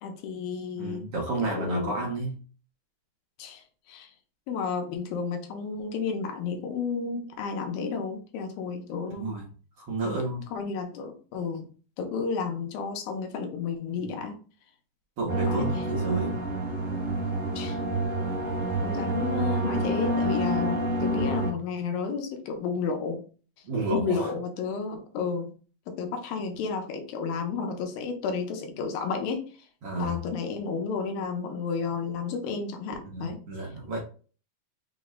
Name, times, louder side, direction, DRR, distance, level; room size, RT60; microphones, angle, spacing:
voice 1, 0.0-1.1 1.4-2.0 3.4-4.1 4.5-9.3 10.0-10.2 10.5-11.7 12.0-14.4 15.5-15.7 16.1-16.2 17.6-17.8 18.8-23.2 23.9-25.5 25.9-29.4 30.0-33.4, left 5 dB, 90° left, 4 dB, 2.5 m, -32 dB
voice 2, 0.8-2.4 9.1-9.5 9.8-10.4 14.0-14.2 15.2-16.4 23.6-24.3 29.8-30.2 33.0-34.0, right 2 dB, 80° right, -4 dB, 1.3 m, -31 dB
sound 1, 15.3-21.5, right 1 dB, 35° right, 1.1 m, -28 dB
5.7 x 2.1 x 3.6 m, 0.39 s
omnidirectional pair, 4.2 m